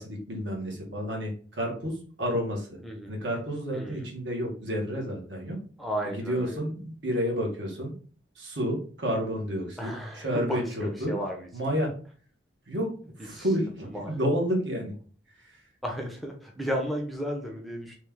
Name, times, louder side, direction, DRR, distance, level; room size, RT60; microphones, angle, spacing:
voice 1, 0.0-2.8 3.1-5.6 6.0-7.9 8.3-11.2 11.5-11.9 12.7-14.9 15.4-15.6, equal, 65° right, 0 dB, 1.3 m, -30 dB
voice 2, 3.7-4.1 5.8-6.6 9.8-11.5 13.3-13.5 13.9-14.1 15.8-17.9, equal, ahead, 1 dB, 0.5 m, -34 dB
3.2 x 3.0 x 3.5 m, 0.42 s
head